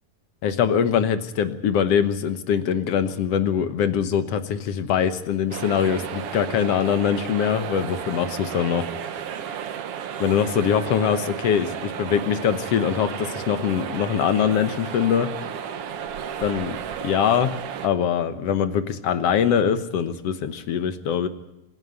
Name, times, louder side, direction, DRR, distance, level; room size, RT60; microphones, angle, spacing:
voice 1, 0.4-8.9 10.2-15.3 16.4-17.5 17.8-21.3, left 8 dB, 60° left, 11 dB, 1.7 m, -23 dB
sound 1, 5.5-17.9, right 8 dB, 60° right, 1.6 m, -33 dB
26.0 x 10.5 x 9.6 m, 0.91 s
omnidirectional pair, 4.0 m